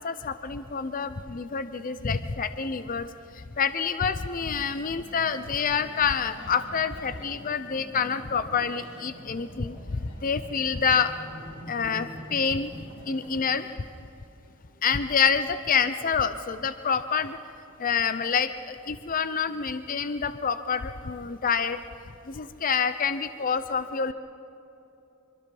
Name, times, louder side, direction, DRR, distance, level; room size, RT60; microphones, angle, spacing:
voice 1, 0.0-3.1 3.6-9.8 10.2-11.1 11.7-12.7 13.1-13.6 14.8-17.4 17.8-21.8 22.3-24.1, left 6 dB, 40° left, 11 dB, 0.6 m, -27 dB
sound 1, 4.4-13.6, equal, 65° left, 5.0 m, -45 dB
25.5 x 24.0 x 5.4 m, 2.9 s
head